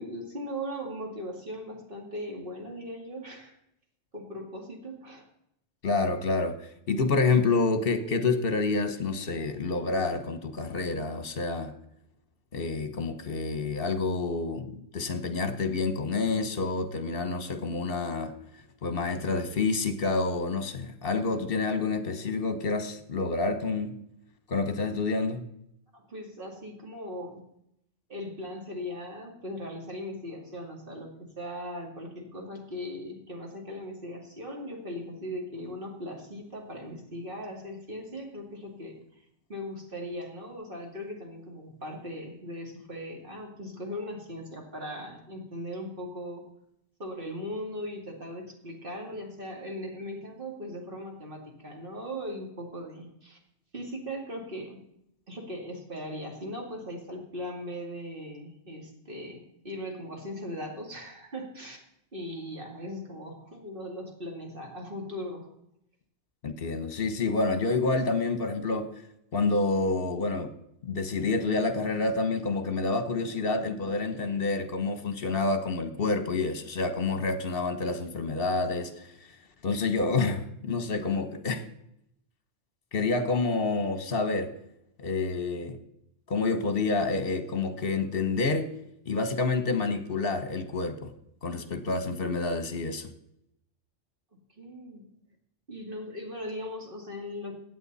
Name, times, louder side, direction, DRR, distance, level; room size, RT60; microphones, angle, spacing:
voice 1, 0.0-3.5 4.1-5.3 25.9-27.4 28.1-46.4 47.0-53.4 53.7-54.8 55.3-61.8 62.1-65.5 94.6-95.0 95.7-97.5, equal, 45° right, 1 dB, 2.6 m, -39 dB
voice 2, 5.8-6.5 6.9-11.7 12.5-18.3 18.8-23.9 24.5-25.4 66.4-68.9 69.3-70.5 70.8-79.1 79.6-81.6 82.9-84.5 85.0-85.8 86.3-88.7 89.1-91.1 91.4-93.1, left 3 dB, 50° left, 9 dB, 1.3 m, -28 dB
16.0 x 9.4 x 4.1 m, 0.78 s
omnidirectional pair, 1.3 m